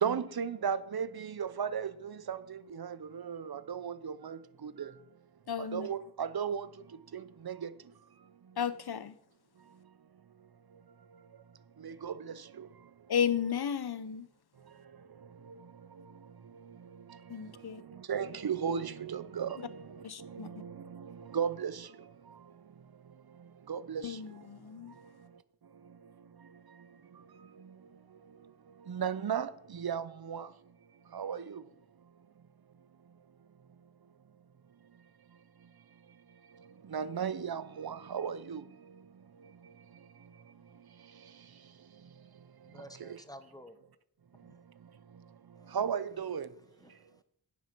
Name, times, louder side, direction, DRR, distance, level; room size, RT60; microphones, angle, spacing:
voice 1, 0.0-4.9 5.7-6.7 7.1-7.7 11.8-12.1 18.1-19.6 20.3-21.0 21.3-21.9 23.7-24.0 28.9-30.5 31.1-31.6 36.9-38.6 45.7-46.5, right 7 dB, 60° right, 0.6 m, -35 dB
voice 2, 5.5-5.9 8.6-9.1 13.1-14.3 17.3-17.8 20.0-20.5 24.0-24.9, left 8 dB, 60° left, 0.6 m, -33 dB
voice 3, 42.7-43.8 44.4-44.6 45.6-45.8 46.8-47.2, equal, 10° left, 0.9 m, -52 dB
9.5 x 6.2 x 6.0 m
wide cardioid pair, 50°, 43 cm